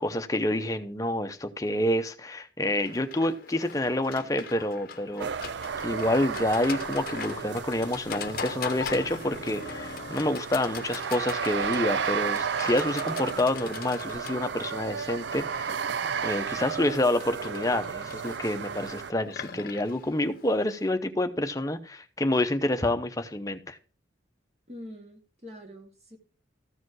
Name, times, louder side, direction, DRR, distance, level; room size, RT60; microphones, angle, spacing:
voice 1, 0.0-5.3 5.8-15.8 16.2-23.8, left 1 dB, 15° left, 0.8 m, -28 dB
Livestock farm animals working animals, 2.9-20.9, left 5 dB, 50° left, 0.8 m, -41 dB
sound 1, 5.2-19.1, right 6 dB, 65° right, 0.4 m, -33 dB
voice 2, 24.7-26.2, left 1 dB, 35° right, 2.3 m, -45 dB
14.0 x 5.1 x 6.2 m
head